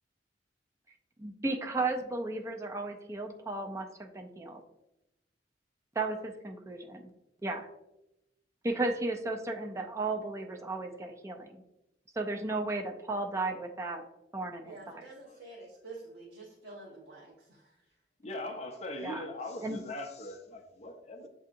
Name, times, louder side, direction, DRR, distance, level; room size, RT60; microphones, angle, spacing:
voice 1, 1.2-4.6 6.0-7.1 7.4-7.7 8.6-11.6 12.2-14.0 14.3-15.0 19.0-19.2 19.6-19.8, right 2 dB, 15° right, 3 dB, 0.4 m, -34 dB
voice 2, 14.6-17.8, right 3 dB, 70° right, -5 dB, 0.9 m, -48 dB
voice 3, 18.2-21.3, left 1 dB, 40° left, 3 dB, 0.5 m, -40 dB
7.2 x 2.7 x 2.5 m, 0.90 s
head